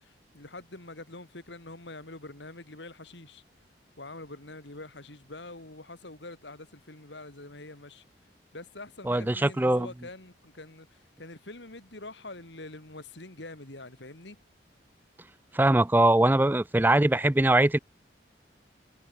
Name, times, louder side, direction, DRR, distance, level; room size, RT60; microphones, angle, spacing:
voice 1, 0.0-3.4 4.0-8.0 8.5-14.4, left 2 dB, 75° left, 3.2 m, -45 dB
voice 2, 9.1-9.9 15.5-17.8, right 1 dB, 10° right, 0.4 m, -22 dB
head